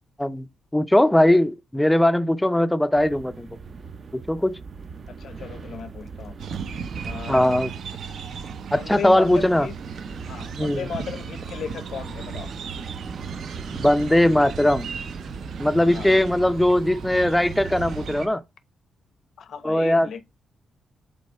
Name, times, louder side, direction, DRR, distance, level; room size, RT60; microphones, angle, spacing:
voice 1, 0.7-3.5 4.1-4.6 7.3-7.7 8.7-9.7 10.6-10.8 13.8-14.9 15.6-18.4 19.6-20.1, left 1 dB, 5° left, 0.4 m, -20 dB
sound 1, 2.9-18.2, right 5 dB, 50° right, 0.6 m, -38 dB
voice 2, 5.2-6.3 7.0-7.6 8.7-9.7 10.3-12.5 15.9-16.1 19.4-20.2, left 6 dB, 75° left, 0.7 m, -35 dB
sound 2, 6.4-18.3, right 7 dB, 75° right, 0.8 m, -37 dB
5.3 x 4.1 x 4.6 m
cardioid pair, 110°, 0 cm